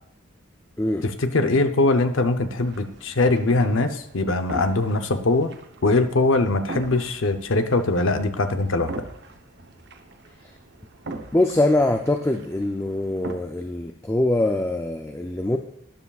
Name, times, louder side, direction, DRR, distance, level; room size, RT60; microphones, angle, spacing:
voice 1, 1.0-5.5 5.8-8.9, left 2 dB, 70° left, 8 dB, 0.7 m, -22 dB
sound 1, 2.6-13.3, right 2 dB, 55° right, 0.9 m, -41 dB
voice 2, 11.3-15.6, left 1 dB, 10° left, 5 dB, 0.4 m, -23 dB
12.5 x 9.7 x 2.4 m, 0.74 s
head